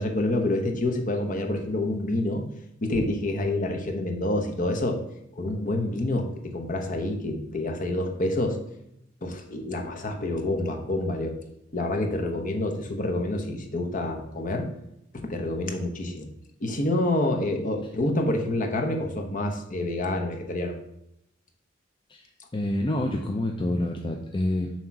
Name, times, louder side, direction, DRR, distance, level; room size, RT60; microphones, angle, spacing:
voice 1, 0.0-2.4 2.8-5.0 5.3-8.6 9.2-11.3 11.7-14.7 15.1-16.3 16.6-20.8, left 1 dB, 40° left, 3 dB, 0.9 m, -27 dB
voice 2, 22.1-24.7, left 1 dB, 25° left, 1 dB, 0.5 m, -28 dB
7.3 x 3.0 x 5.8 m, 0.79 s
head